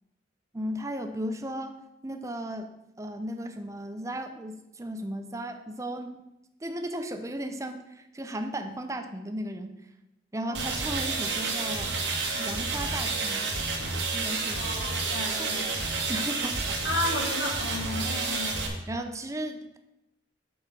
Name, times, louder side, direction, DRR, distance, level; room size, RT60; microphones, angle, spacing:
voice 1, 0.5-2.7 3.0-6.2 6.6-9.7 10.3-12.0 12.4-13.5 14.1-14.6 15.3-15.5 16.1-16.8 18.2-19.8, right 1 dB, 15° right, 7 dB, 0.6 m, -35 dB
sound 1, 10.5-18.7, right 3 dB, 75° right, 2.0 m, -30 dB
voice 2, 14.5-15.7 16.8-18.5, left 2 dB, 85° left, -2 dB, 3.0 m, -33 dB
8.2 x 6.5 x 5.3 m, 0.90 s
head